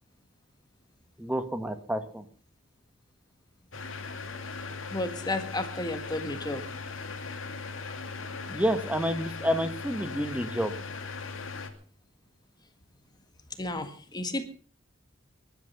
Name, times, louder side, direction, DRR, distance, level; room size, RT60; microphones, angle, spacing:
voice 1, 1.2-2.2 8.5-10.7, equal, 5° right, 9 dB, 1.6 m, -29 dB
sound 1, 3.7-11.7, left 4 dB, 70° left, 2.4 m, -38 dB
voice 2, 4.9-6.7 13.6-14.4, left 2 dB, 20° left, 8 dB, 1.7 m, -32 dB
20.0 x 11.5 x 5.6 m, 0.43 s
head